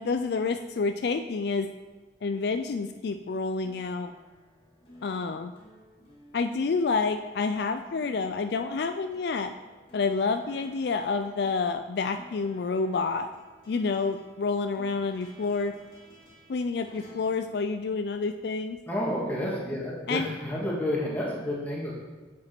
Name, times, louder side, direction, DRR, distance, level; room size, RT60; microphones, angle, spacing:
voice 1, 0.0-1.7 2.2-4.1 5.0-5.5 6.3-9.5 9.9-13.3 13.7-15.7 16.5-18.8 20.1-20.3, left 4 dB, 60° left, 8 dB, 0.4 m, -28 dB
sound 1, 3.6-18.5 19.8-19.9, left 1 dB, 25° left, 2.3 m, -55 dB
voice 2, 18.9-21.9, left 1 dB, 10° left, -5 dB, 1.7 m, -30 dB
7.4 x 7.4 x 4.4 m, 1.3 s
head